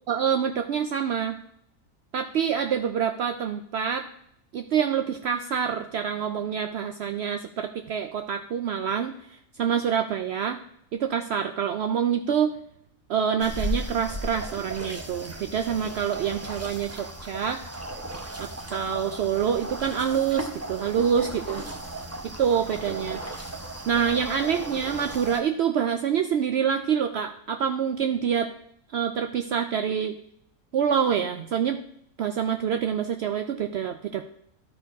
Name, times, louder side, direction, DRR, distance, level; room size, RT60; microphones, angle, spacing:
voice 1, 0.1-1.4 2.1-4.1 4.5-10.6 10.9-12.6 13.1-17.6 18.4-21.6 22.2-23.2 23.9-28.5 28.9-30.2 30.7-31.8 32.2-34.2, right 8 dB, 65° right, 6 dB, 0.7 m, -26 dB
sound 1, 13.4-25.4, right 1 dB, 15° right, 0.7 m, -36 dB
12.5 x 4.5 x 4.7 m, 0.71 s
omnidirectional pair, 1.4 m